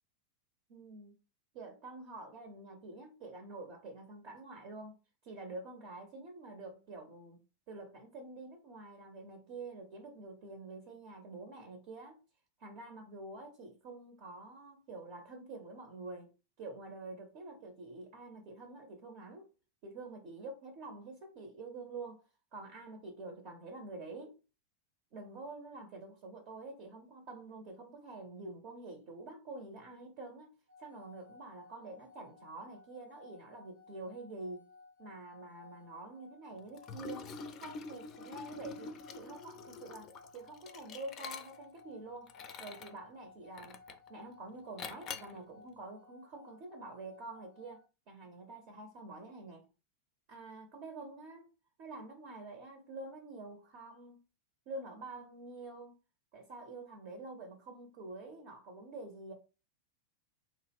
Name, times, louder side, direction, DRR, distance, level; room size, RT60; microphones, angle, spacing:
voice 1, 0.7-1.1 1.5-5.0 5.2-7.4 7.7-12.2 12.6-19.5 19.8-24.4 25.1-34.7 35.0-37.3 37.6-43.8 44.1-49.7 50.3-51.5 51.8-54.2 54.7-55.9 56.3-59.3, right 2 dB, 45° right, 0.7 m, -47 dB
sound 1, 30.7-47.8, left 3 dB, 90° right, 1.3 m, -58 dB
Liquid, 36.8-41.8 42.3-43.0 43.6-44.1 44.8-45.4, left 4 dB, 30° left, 0.4 m, -46 dB
3.0 x 2.3 x 3.4 m
figure-of-eight pair, 90°, 0 cm